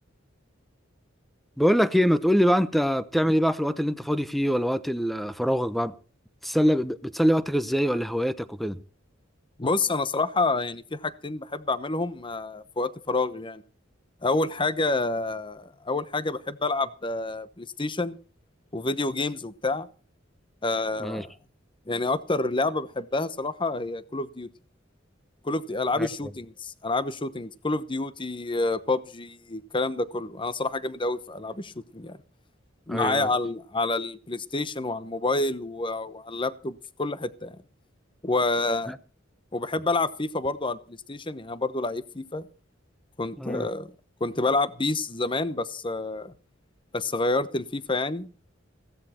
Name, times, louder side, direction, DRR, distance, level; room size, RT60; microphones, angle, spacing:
voice 1, 1.6-5.9 6.4-8.8 21.0-21.2 26.0-26.1 32.9-33.3 38.9-39.0 43.4-43.7, equal, ahead, 0.8 m, -24 dB
voice 2, 9.6-13.6 14.2-18.2 18.7-19.9 20.6-21.3 21.9-24.5 25.4-32.2 32.9-37.6 38.2-38.9 39.5-42.5 43.2-43.9 44.2-46.3 46.9-48.3, left 2 dB, 25° left, 1.0 m, -28 dB
16.5 x 14.0 x 4.4 m
head